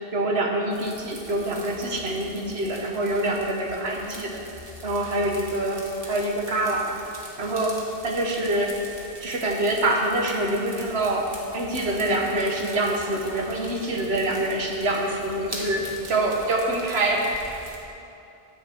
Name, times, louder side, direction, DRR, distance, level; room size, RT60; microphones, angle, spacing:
voice 1, 0.1-4.4 4.8-7.0 7.4-8.8 9.2-17.4, right 1 dB, 85° right, 0 dB, 1.3 m, -25 dB
sound 1, 0.7-17.8, right 1 dB, 35° right, 1.3 m, -43 dB
10.0 x 8.1 x 4.4 m, 2.7 s
omnidirectional pair, 1.0 m